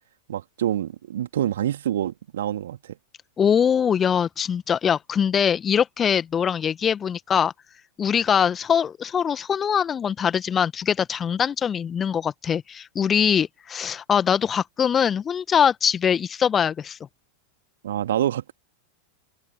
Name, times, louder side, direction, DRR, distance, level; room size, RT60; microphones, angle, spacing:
voice 1, 0.3-2.8 17.8-18.5, right 11 dB, 60° right, 2.7 m, -26 dB
voice 2, 3.4-7.5 8.0-17.0, left 7 dB, 20° left, 1.4 m, -22 dB
figure-of-eight pair, 90°, 0 cm